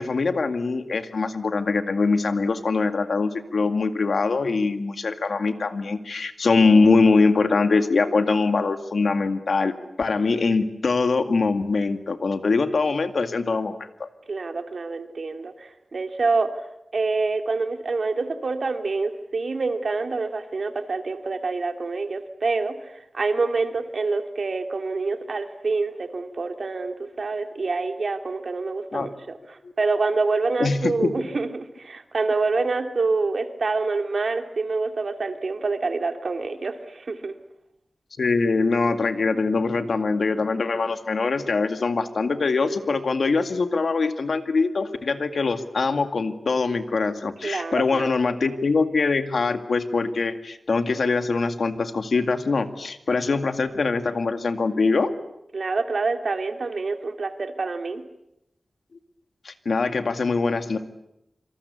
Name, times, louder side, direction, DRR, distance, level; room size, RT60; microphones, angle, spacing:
voice 1, 0.0-14.1 28.9-29.1 30.6-31.2 38.2-55.1 59.4-60.8, left 4 dB, 75° left, 8 dB, 2.1 m, -23 dB
voice 2, 14.3-16.5 16.9-37.3 47.4-48.1 55.5-58.0, right 3 dB, 65° right, 6 dB, 2.9 m, -26 dB
26.5 x 26.5 x 8.4 m, 0.83 s
wide cardioid pair, 105°, 0 cm